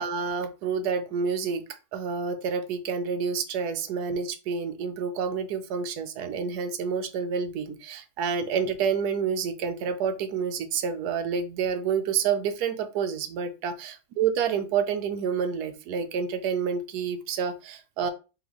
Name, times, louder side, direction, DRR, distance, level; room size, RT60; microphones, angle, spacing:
voice 1, 0.0-1.6 1.9-18.1, right 6 dB, 70° right, 7 dB, 1.1 m, -28 dB
4.0 x 3.4 x 3.0 m, 0.32 s
omnidirectional pair, 2.0 m